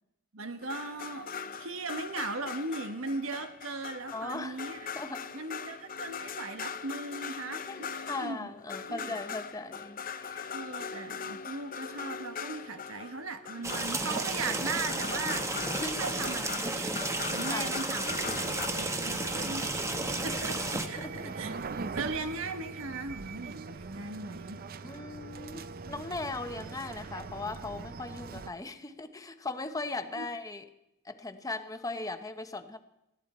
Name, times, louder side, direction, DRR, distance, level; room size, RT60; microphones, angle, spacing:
voice 1, 0.3-1.3 1.6-4.9 5.3-8.5 8.9-9.2 10.5-17.0 17.3-18.1 18.4-19.7 20.2-21.5 21.9-24.6 30.2-30.3, right 3 dB, 85° right, 1.2 m, -38 dB
sound 1, 0.6-14.4 14.9-18.7, left 6 dB, 45° left, 0.7 m, -41 dB
voice 2, 4.1-4.6 4.9-5.3 7.7-10.6 15.8-16.1 17.5-17.8 19.1-20.1 20.8-21.4 24.8-30.7 31.0-32.8, left 3 dB, 15° left, 0.9 m, -39 dB
sound 2, 13.6-20.9, right 2 dB, 15° right, 1.0 m, -33 dB
sound 3, 18.1-28.5, right 4 dB, 45° right, 0.6 m, -41 dB
19.5 x 14.5 x 4.3 m
head